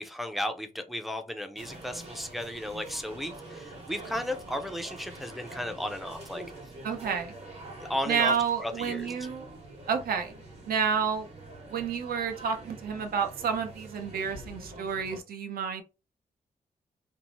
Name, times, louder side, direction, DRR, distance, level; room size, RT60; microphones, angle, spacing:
voice 1, 0.0-6.4 7.8-8.3 8.6-9.1, left 1 dB, ahead, 0.4 m, -34 dB
sound 1, 1.6-15.2, right 2 dB, 45° right, 0.9 m, -45 dB
voice 2, 6.8-7.3 8.1-9.5 9.9-10.3 10.7-11.3 11.7-15.8, right 6 dB, 80° right, 0.6 m, -30 dB
2.6 x 2.0 x 2.9 m
wide cardioid pair, 125°, 15 cm